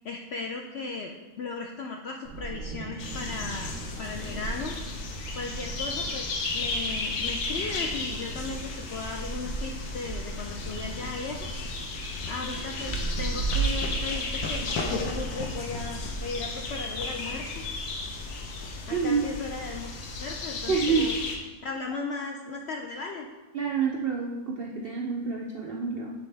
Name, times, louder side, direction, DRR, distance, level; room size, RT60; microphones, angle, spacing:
voice 1, 0.0-3.7 4.0-4.8 5.0-6.2 6.5-11.5 12.3-17.6 18.4-19.9 20.2-21.2 21.6-23.3, left 4 dB, 70° left, 2 dB, 0.6 m, -36 dB
Wind, 2.2-16.4, right 5 dB, 90° right, 1.2 m, -37 dB
sound 1, 3.0-21.4, left 3 dB, 90° left, 1.3 m, -34 dB
voice 2, 18.9-19.2 20.7-21.1 23.5-26.1, right 5 dB, 70° right, -1 dB, 0.5 m, -27 dB
9.8 x 3.6 x 3.3 m, 1.2 s
omnidirectional pair, 1.6 m